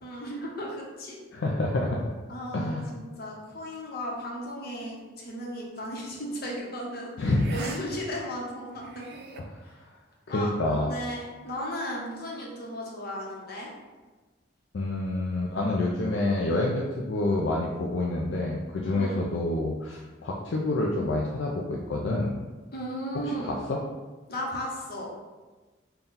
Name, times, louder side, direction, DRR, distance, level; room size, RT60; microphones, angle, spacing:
voice 1, 0.0-1.2 2.3-9.1 9.6-9.8 10.3-13.7 18.8-19.2 22.7-23.5 24.3-25.1, equal, 55° left, -3 dB, 0.9 m, -35 dB
voice 2, 1.3-2.1 2.5-2.9 7.2-7.4 10.3-10.9 14.7-22.3 23.5-23.8, left 2 dB, 75° left, -2 dB, 0.4 m, -27 dB
sound 1, 5.8-6.0 7.3-7.8 8.1-8.2 8.7-9.4, right 4 dB, 60° right, 0.4 m, -42 dB
3.7 x 2.3 x 4.0 m, 1.3 s
head